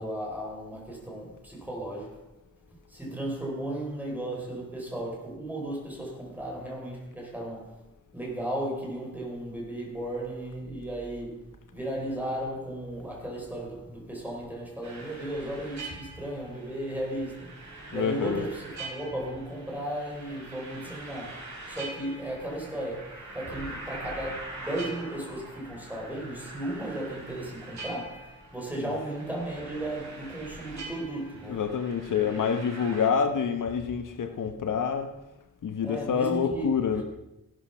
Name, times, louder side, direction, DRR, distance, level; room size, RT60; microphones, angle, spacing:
voice 1, 0.0-2.3 2.9-7.8 8.1-31.6 32.1-32.7 35.8-36.7, right 1 dB, 5° right, 4.2 m, -35 dB
sound 1, 14.8-33.1, right 2 dB, 55° right, 4.9 m, -43 dB
voice 2, 17.9-18.5 28.8-29.0 31.4-35.1 35.6-37.0, left 6 dB, 70° left, 1.2 m, -27 dB
15.0 x 12.5 x 5.7 m
wide cardioid pair, 175°, 33 cm